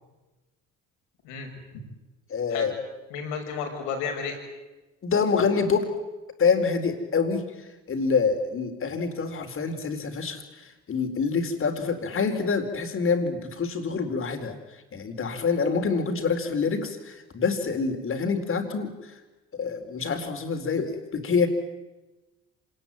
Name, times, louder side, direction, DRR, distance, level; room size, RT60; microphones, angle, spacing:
voice 1, 1.2-1.8 2.5-2.7 3.1-4.4, left 6 dB, 85° left, 3 dB, 6.2 m, -32 dB
voice 2, 2.3-2.7 5.0-5.9 6.4-7.5 7.9-10.4 10.9-14.6 14.9-19.0 19.5-21.5, left 5 dB, 45° left, 6 dB, 4.3 m, -26 dB
26.0 x 20.0 x 9.2 m, 1.1 s
supercardioid pair, 75°, 30 cm